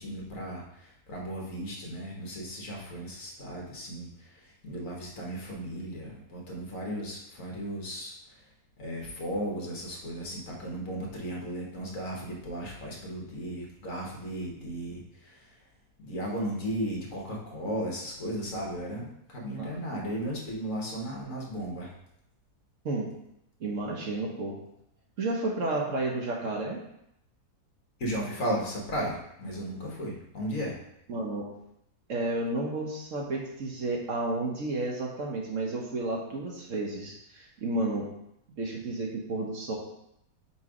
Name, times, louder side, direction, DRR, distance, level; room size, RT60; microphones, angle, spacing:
voice 1, 0.0-8.4 8.8-15.5 16.0-21.9 28.0-30.8, equal, 55° left, -2 dB, 1.6 m, -35 dB
voice 2, 23.6-24.6 25.2-26.8 31.1-31.4 32.1-38.1 38.6-39.8, right 2 dB, 55° right, -1 dB, 1.2 m, -31 dB
4.6 x 4.1 x 4.9 m, 0.79 s
omnidirectional pair, 1.7 m